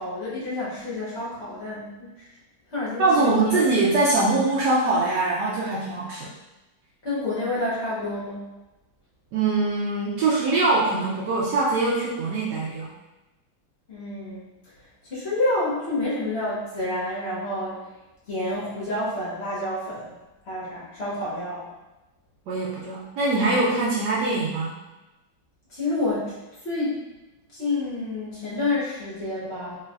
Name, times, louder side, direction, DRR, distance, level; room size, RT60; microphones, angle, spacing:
voice 1, 0.0-2.1 2.7-3.6 7.0-8.5 13.9-14.5 15.1-17.8 18.3-20.1 20.5-21.7 25.7-26.3 26.6-27.0 27.5-29.8, left 2 dB, 55° left, -9 dB, 0.7 m, -29 dB
voice 2, 3.0-6.3 9.3-12.9 22.5-24.7, right 3 dB, 85° right, -6 dB, 0.9 m, -23 dB
3.2 x 3.1 x 2.4 m, 1.0 s
omnidirectional pair, 2.4 m